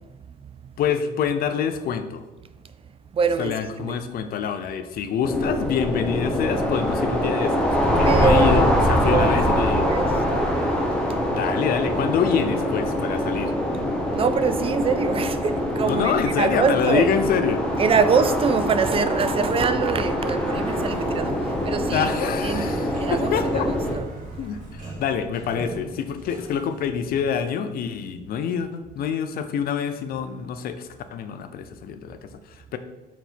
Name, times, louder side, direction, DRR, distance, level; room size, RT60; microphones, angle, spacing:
voice 1, 0.8-2.2 3.4-9.9 11.3-13.5 15.8-17.6 21.9-23.7 24.4-32.8, left 7 dB, 60° left, 0.6 m, -26 dB
voice 2, 3.1-4.0 8.0-8.7 9.1-10.8 14.1-17.1 17.8-22.1 22.4-24.1, right 5 dB, 35° right, 0.4 m, -24 dB
sound 1, 5.2-24.0, equal, 5° left, 1.1 m, -24 dB
Sliding door, 20.2-27.4, right 1 dB, 50° right, 2.1 m, -39 dB
6.1 x 4.0 x 4.5 m
cardioid pair, 110°, 17 cm